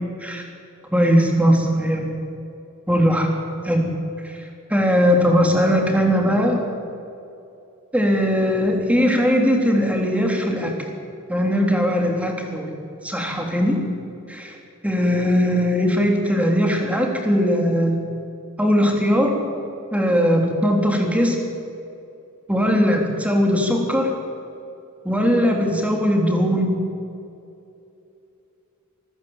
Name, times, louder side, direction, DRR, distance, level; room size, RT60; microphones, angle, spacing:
voice 1, 0.9-2.2 2.9-3.3 3.6-3.9 4.2-4.4 4.7-6.6 7.9-10.7 11.3-12.7 13.0-13.8 14.3-14.6 14.8-18.0 18.6-19.3 19.9-21.4 22.5-24.1 25.0-26.8, equal, 5° right, 2 dB, 3.5 m, -19 dB
26.0 x 14.5 x 9.1 m, 2.7 s
head